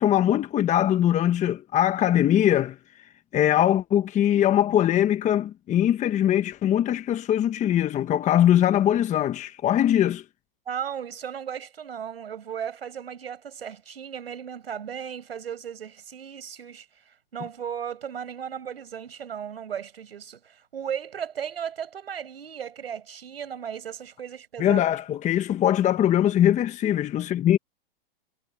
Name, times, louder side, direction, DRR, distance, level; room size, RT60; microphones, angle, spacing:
voice 1, 0.0-2.8 3.3-10.2 24.6-27.6, left 11 dB, 25° left, 1.3 m, -21 dB
voice 2, 10.7-24.9, right 8 dB, 85° right, 5.7 m, -36 dB
hypercardioid pair, 120°, 29 cm